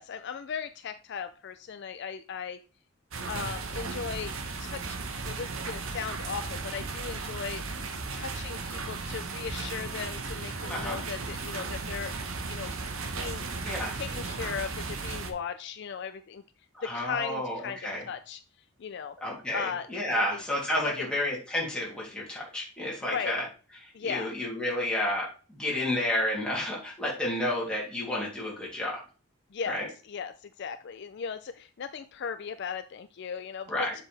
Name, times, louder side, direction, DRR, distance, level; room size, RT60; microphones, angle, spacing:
voice 1, 0.0-2.6 3.3-4.3 4.6-5.0 5.3-7.6 8.1-12.1 12.5-13.5 13.9-16.4 16.8-17.8 18.1-18.4 18.8-19.2 19.5-19.9 20.1-20.4 21.0-21.1 23.0-23.3 23.9-24.3 29.5-29.8 30.1-33.9, left 6 dB, 55° left, 11 dB, 0.4 m, -37 dB
sound 1, 3.1-15.3, right 3 dB, 70° right, 1.0 m, -35 dB
voice 2, 10.7-11.0 13.6-14.0 16.7-18.1 19.2-23.4 23.8-29.0 29.7-29.9 33.7-33.9, left 1 dB, 5° left, -5 dB, 2.9 m, -31 dB
7.4 x 5.3 x 3.3 m, 0.35 s
head